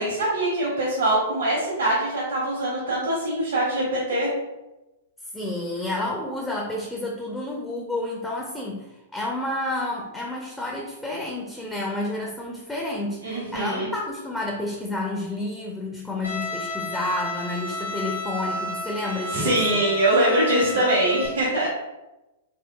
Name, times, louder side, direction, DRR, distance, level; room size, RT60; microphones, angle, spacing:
voice 1, 0.0-4.3 13.2-13.9 19.3-21.7, right 1 dB, 65° right, -7 dB, 1.1 m, -23 dB
voice 2, 5.3-19.8, left 2 dB, 5° left, -2 dB, 0.4 m, -30 dB
Bowed string instrument, 16.2-21.3, left 2 dB, 80° left, 0.8 m, -32 dB
3.5 x 2.3 x 2.3 m, 1.0 s
figure-of-eight pair, 105°, 0 cm